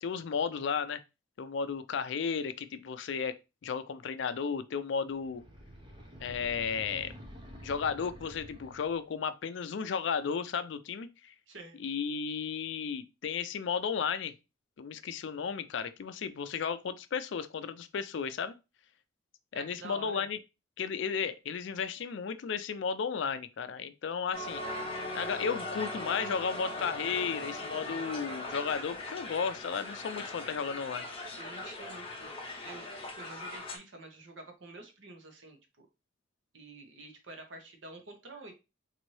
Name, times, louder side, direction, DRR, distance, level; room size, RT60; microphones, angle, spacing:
voice 1, 0.0-1.0 1.4-3.4 3.6-5.4 6.2-7.1 7.6-11.3 11.8-14.3 14.8-18.6 19.5-20.4 20.8-24.6 25.1-31.1, left 6 dB, 60° left, 0.4 m, -34 dB
sound 1, 5.2-9.1, equal, 25° right, 0.6 m, -49 dB
voice 2, 11.5-11.8 19.5-20.3 31.4-32.9 33.1-35.9 36.5-38.5, right 2 dB, 65° right, 0.9 m, -48 dB
Crowd, 24.3-33.8, left 2 dB, 25° left, 0.8 m, -39 dB
4.0 x 2.6 x 3.1 m
head